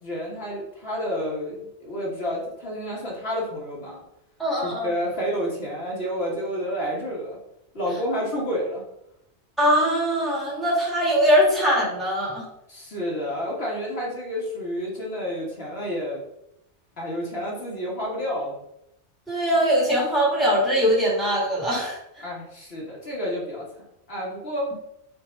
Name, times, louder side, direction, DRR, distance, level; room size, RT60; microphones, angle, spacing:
voice 1, 0.0-4.0 4.6-7.4 7.7-8.8 12.7-16.2 17.0-18.5 22.2-23.7 24.1-24.7, equal, 60° left, -4 dB, 2.1 m, -30 dB
voice 2, 4.4-4.9 9.6-12.4 19.3-22.0, equal, ahead, -5 dB, 2.2 m, -21 dB
6.8 x 3.5 x 4.0 m, 0.81 s
omnidirectional pair, 1.2 m